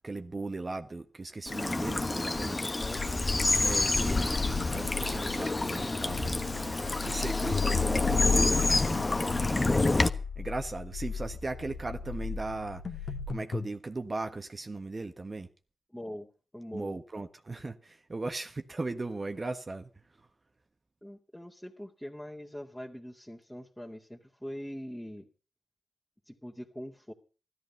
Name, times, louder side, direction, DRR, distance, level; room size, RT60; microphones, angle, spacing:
voice 1, 0.0-2.7 3.6-6.5 7.0-9.0 9.3-10.0 10.4-15.5 16.7-19.9, right 3 dB, 45° right, 1.4 m, -37 dB
Bird vocalization bird call bird song / Stream, 1.5-10.1, left 2 dB, 35° left, 1.3 m, -28 dB
voice 2, 2.7-3.2 15.9-16.3 16.5-17.0 21.0-25.3 26.3-27.1, equal, 5° left, 2.2 m, -42 dB
sound 1, 4.4-13.3, left 6 dB, 80° left, 4.3 m, -35 dB
sound 2, 7.5-8.4 12.8-13.7, left 4 dB, 60° left, 1.6 m, -35 dB
14.0 x 13.0 x 5.6 m
supercardioid pair, 40°, 0 cm